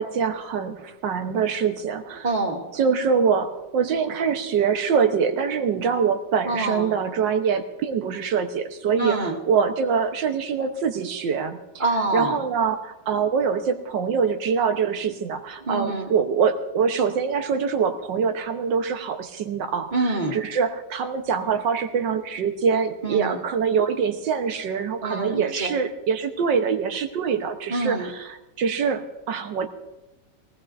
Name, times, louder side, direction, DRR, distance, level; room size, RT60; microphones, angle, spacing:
voice 1, 0.0-2.3 2.8-9.2 9.5-11.6 12.1-19.9 20.3-28.0 28.6-29.7, right 6 dB, 90° right, 7 dB, 1.8 m, -24 dB
voice 2, 2.2-2.6 6.4-6.9 9.0-9.4 11.8-12.4 15.6-16.1 19.9-20.4 23.0-23.4 25.0-25.7 27.7-28.1, right 2 dB, 25° right, 0 dB, 2.0 m, -26 dB
21.5 x 18.0 x 2.6 m, 1.0 s
omnidirectional pair, 1.9 m